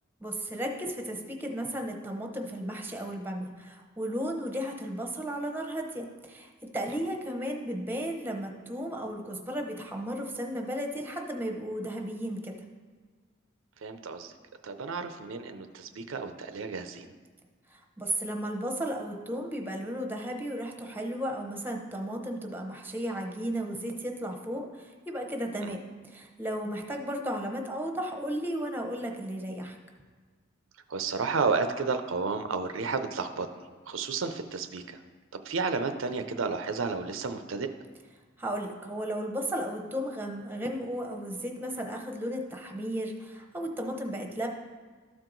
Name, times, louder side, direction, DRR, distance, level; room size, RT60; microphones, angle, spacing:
voice 1, 0.2-12.5 17.7-29.8 38.4-44.5, equal, 10° right, 3 dB, 0.8 m, -34 dB
voice 2, 13.8-14.3 14.6-17.1 25.6-25.8 30.9-33.5 33.9-35.0 35.3-37.7, right 4 dB, 80° right, 8 dB, 0.6 m, -32 dB
12.5 x 4.6 x 3.9 m, 1.5 s
head